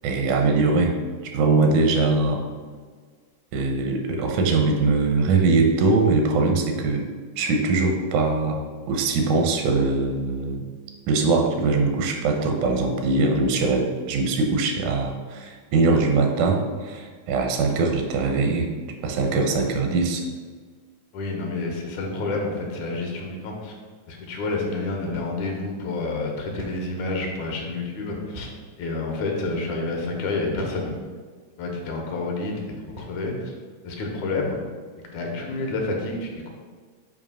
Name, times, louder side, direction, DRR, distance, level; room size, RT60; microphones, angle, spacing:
voice 1, 0.0-0.9 1.3-2.4 3.5-7.1 7.4-8.6 8.9-10.6 11.1-18.7 19.0-20.2, right 3 dB, 85° right, 3 dB, 2.2 m, -22 dB
voice 2, 21.1-23.8 24.1-28.5 28.8-30.9 31.6-33.5 33.8-34.6 35.0-36.5, left 3 dB, 80° left, 0 dB, 2.4 m, -29 dB
sound 1, 25.1-25.4 25.7-25.8 26.6-26.9 28.3-28.7 29.4-29.6 30.6-30.9 31.6-31.9 32.9-33.3, right 1 dB, 60° right, 0.7 m, -40 dB
7.2 x 2.9 x 5.5 m, 1.5 s
omnidirectional pair, 3.4 m